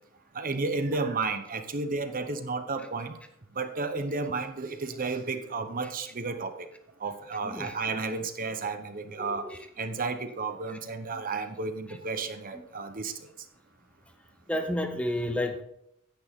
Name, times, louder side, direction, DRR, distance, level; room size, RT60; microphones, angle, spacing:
voice 1, 0.3-3.2 3.5-6.7 7.0-9.5 9.8-13.1, right 3 dB, 40° right, 8 dB, 0.9 m, -32 dB
voice 2, 7.4-7.7 9.2-9.6 14.5-15.6, left 1 dB, 5° left, 6 dB, 0.7 m, -31 dB
10.0 x 8.8 x 3.6 m, 0.74 s
head